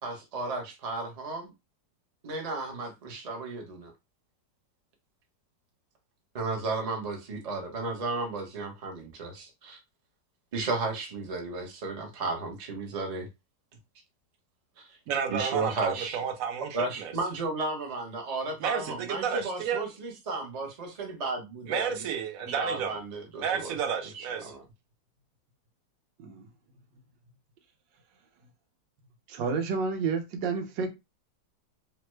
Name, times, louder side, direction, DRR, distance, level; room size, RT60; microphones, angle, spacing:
voice 1, 0.0-1.5 2.2-3.9 6.3-9.8 10.5-13.3 14.8-14.9 15.3-16.2 16.7-22.0 22.6-23.7 24.1-24.6, right 3 dB, 45° right, 0.5 m, -34 dB
voice 2, 15.1-17.1 18.6-19.9 21.7-23.0 23.4-24.5, right 7 dB, 65° right, 0.9 m, -31 dB
voice 3, 29.3-30.9, right 5 dB, 80° right, 1.4 m, -30 dB
3.2 x 2.1 x 3.1 m
omnidirectional pair, 1.9 m